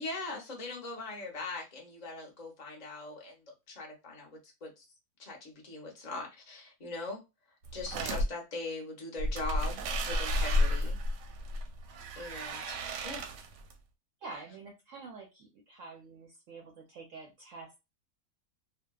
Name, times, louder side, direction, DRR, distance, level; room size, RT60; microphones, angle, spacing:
voice 1, 0.0-3.4 3.7-4.8 5.2-7.2 7.7-11.0 12.1-13.2, left 2 dB, 40° left, 0.6 m, -41 dB
sound 1, 7.7-8.2 9.2-13.7, left 1 dB, 90° right, 1.2 m, -32 dB
voice 2, 7.9-8.2 14.2-17.8, right 4 dB, 70° right, 0.7 m, -47 dB
2.6 x 2.2 x 2.3 m
omnidirectional pair, 1.7 m